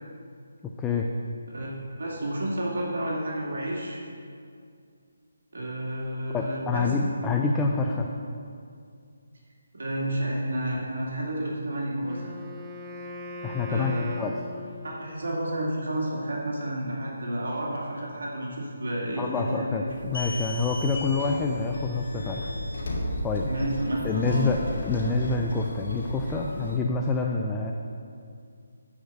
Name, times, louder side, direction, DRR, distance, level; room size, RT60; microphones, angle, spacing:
voice 1, 2.0-4.0 5.5-6.9 7.2-7.3 9.7-12.3 13.7-14.2 14.8-19.8 20.3-20.4 23.5-24.5, right 1 dB, 70° right, -4 dB, 2.3 m, -31 dB
voice 2, 6.3-8.1 13.4-14.3 19.2-22.5 23.2-23.5 24.0-27.7, left 4 dB, 10° left, 1 dB, 0.5 m, -27 dB
Wind instrument woodwind instrument, 12.0-15.3, left 2 dB, 15° right, 0.8 m, -40 dB
sound 1, 19.9-26.8, left 1 dB, 70° left, 2.3 m, -34 dB
10.5 x 5.0 x 6.8 m, 2.3 s
figure-of-eight pair, 155°, 0 cm